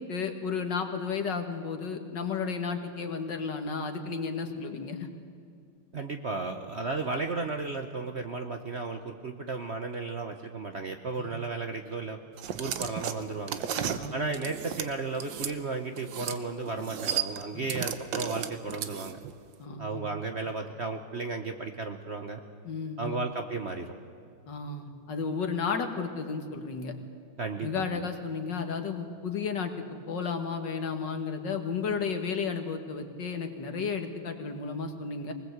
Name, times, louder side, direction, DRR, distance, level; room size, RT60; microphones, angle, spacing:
voice 1, 0.1-5.1 11.2-11.3 13.8-14.3 17.5-17.7 19.6-20.0 22.6-23.1 24.5-26.9 27.6-35.3, left 5 dB, 65° left, 6 dB, 2.3 m, -33 dB
voice 2, 5.9-12.2 12.6-13.6 14.1-19.2 19.8-22.4 23.0-23.9 27.4-28.0, right 3 dB, 45° right, 5 dB, 1.0 m, -34 dB
sound 1, 12.4-15.5 16.0-16.4 16.7-19.3, right 9 dB, 70° right, 1.6 m, -34 dB
23.5 x 19.5 x 8.0 m, 2.2 s
omnidirectional pair, 2.1 m